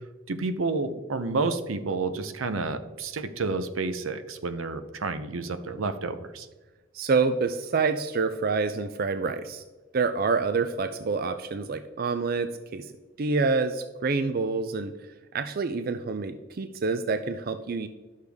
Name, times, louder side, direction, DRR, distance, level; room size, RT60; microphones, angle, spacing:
voice 1, 0.3-6.5, right 3 dB, 85° right, 10 dB, 0.7 m, -30 dB
voice 2, 6.9-9.6 9.9-12.9 13.2-14.9 15.3-17.9, right 4 dB, 45° right, 9 dB, 0.4 m, -27 dB
11.5 x 6.5 x 3.5 m, 1.2 s
head